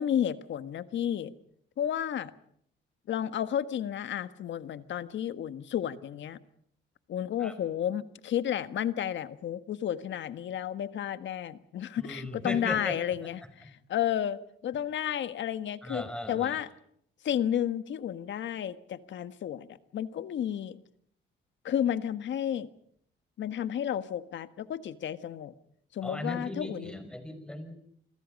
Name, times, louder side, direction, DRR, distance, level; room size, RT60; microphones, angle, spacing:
voice 1, 0.0-1.3 1.8-2.3 3.1-6.4 7.1-16.7 17.2-20.8 21.6-22.7 23.4-25.5 25.9-27.0, left 10 dB, 70° left, 12 dB, 1.5 m, -32 dB
voice 2, 12.0-13.0 15.8-16.6 26.0-27.7, left 1 dB, 5° left, 9 dB, 5.7 m, -37 dB
29.0 x 21.5 x 5.4 m, 0.66 s
cardioid pair, 90°, 20 cm